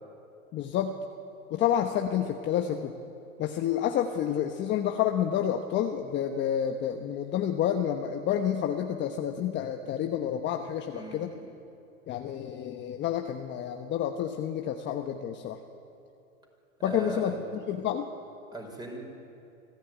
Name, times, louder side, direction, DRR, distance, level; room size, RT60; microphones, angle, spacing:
voice 1, 0.5-1.0 1.5-3.0 3.4-11.3 12.1-15.6 16.8-18.1, left 9 dB, 25° left, 4 dB, 1.1 m, -29 dB
voice 2, 10.8-11.4 16.8-17.4 18.5-19.0, right 2 dB, 10° right, 2 dB, 5.3 m, -38 dB
25.0 x 15.0 x 9.3 m, 2.7 s
hypercardioid pair, 120°, 41 cm